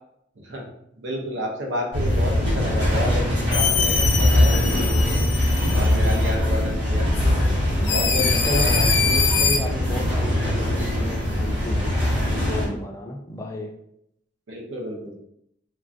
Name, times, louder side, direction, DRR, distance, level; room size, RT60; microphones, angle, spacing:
voice 1, 0.4-0.7 1.0-5.2 5.7-7.1 7.8-9.1 14.5-15.2, equal, 80° right, 0 dB, 0.7 m, -30 dB
sound 1, 1.9-12.7, left 1 dB, 25° right, 1.0 m, -22 dB
sound 2, 3.5-6.3 7.1-7.3 7.8-9.6, left 6 dB, 85° left, 0.5 m, -24 dB
voice 2, 8.2-8.7 9.0-13.8, left 1 dB, 15° left, 2 dB, 0.3 m, -33 dB
3.1 x 2.3 x 2.5 m, 0.75 s
head